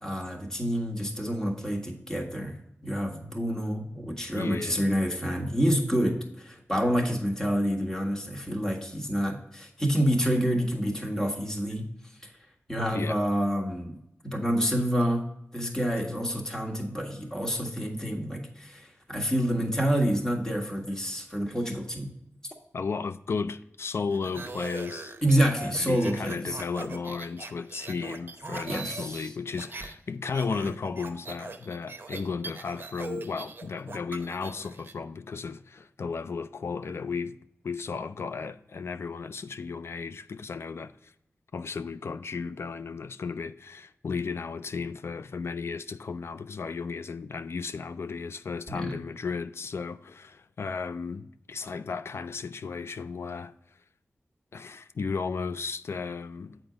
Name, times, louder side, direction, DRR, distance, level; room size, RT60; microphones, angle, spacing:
voice 1, 0.0-2.6 2.8-11.8 12.2-12.3 12.7-14.0 14.3-15.2 15.5-22.1 25.2-26.6 28.7-29.3 48.7-49.0, equal, 10° left, 1.6 m, -28 dB
voice 2, 4.3-4.9 12.9-13.2 22.7-25.1 25.6-37.4 37.6-41.1 41.5-53.5 54.5-56.6, left 5 dB, 65° left, 0.3 m, -34 dB
sound 1, 24.1-29.9 30.2-34.9, right 3 dB, 50° right, 0.8 m, -41 dB
7.9 x 4.5 x 5.0 m
wide cardioid pair, 85°, 5 cm